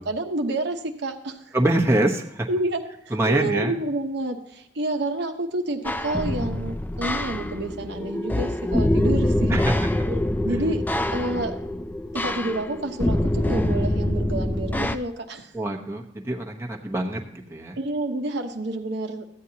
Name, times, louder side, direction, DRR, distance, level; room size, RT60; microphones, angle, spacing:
voice 1, 0.0-1.5 2.5-9.6 9.9-10.8 11.1-11.5 12.1-15.5 17.8-19.2, right 2 dB, 65° right, 4 dB, 0.9 m, -29 dB
voice 2, 1.5-2.5 3.1-3.8 9.5-9.8 15.5-17.8, right 1 dB, 15° right, 1 dB, 0.9 m, -24 dB
sound 1, 5.8-15.0, left 1 dB, 10° left, 0.3 m, -25 dB
14.0 x 9.1 x 2.8 m, 0.76 s
head